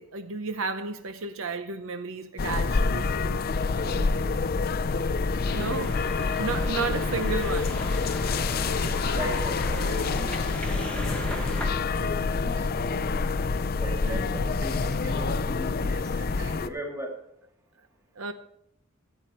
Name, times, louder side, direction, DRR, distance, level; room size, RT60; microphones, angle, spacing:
voice 1, 0.0-3.4 5.5-6.0 6.4-7.8 14.0-14.4 18.2-18.3, right 4 dB, 75° right, 0.7 m, -33 dB
sound 1, 2.4-16.7, left 4 dB, 45° left, 0.5 m, -27 dB
voice 2, 3.6-4.3 8.2-13.2 13.8-17.2, equal, 15° right, 2.2 m, -39 dB
sound 2, 5.4-11.7, left 1 dB, 5° left, 1.2 m, -39 dB
13.5 x 8.3 x 4.3 m
head